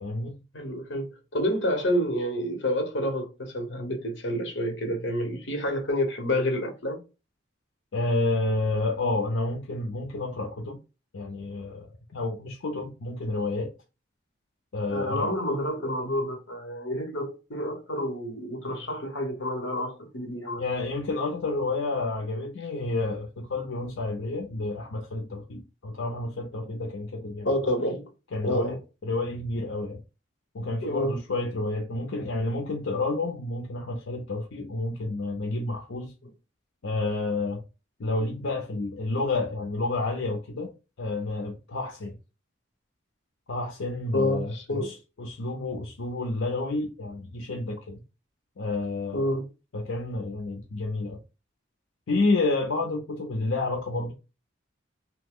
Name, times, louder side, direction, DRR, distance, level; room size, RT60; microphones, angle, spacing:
voice 1, 0.0-0.3 7.9-10.8 11.1-13.7 14.7-15.3 20.6-27.5 28.3-28.8 29.0-30.0 30.5-36.1 36.8-37.6 38.0-40.7 41.0-42.2 43.5-48.0 48.6-49.4 49.7-51.2 52.1-54.1, left 2 dB, 90° left, 0.6 m, -30 dB
voice 2, 0.5-7.0 14.9-20.6 27.4-28.0 28.4-28.8 30.8-31.1 44.1-44.9 49.1-49.4, left 1 dB, 65° left, 0.9 m, -28 dB
2.8 x 2.1 x 3.5 m
head